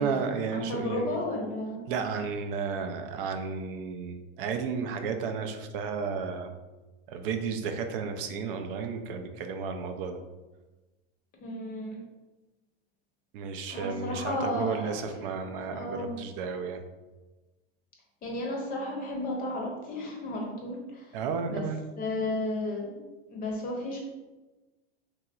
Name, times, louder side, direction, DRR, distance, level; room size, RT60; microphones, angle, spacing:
voice 1, 0.0-1.2 1.9-6.5 7.1-10.2 13.3-16.8 21.1-21.8, right 5 dB, 60° right, 6 dB, 0.4 m, -33 dB
voice 2, 0.5-1.8 11.4-12.0 13.7-15.3 15.6-16.2 18.2-21.2 21.5-21.6 22.0-22.9 23.3-24.0, left 1 dB, 30° left, -1 dB, 0.6 m, -33 dB
3.0 x 2.7 x 2.3 m, 1.2 s
supercardioid pair, 125°, 31 cm